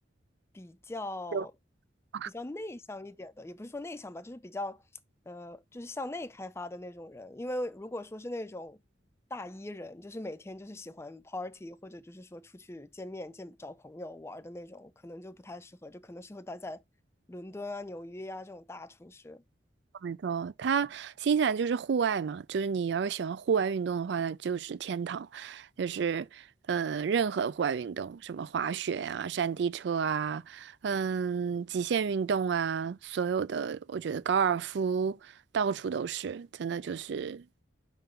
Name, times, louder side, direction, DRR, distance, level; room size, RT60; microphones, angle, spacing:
voice 1, 0.5-1.5 2.2-4.8 5.3-8.8 9.3-16.8 17.3-19.4, left 1 dB, 15° left, 0.5 m, -41 dB
voice 2, 20.0-26.4 26.7-35.2 35.5-37.6, right 6 dB, 65° right, 0.4 m, -30 dB
5.7 x 3.8 x 5.0 m
head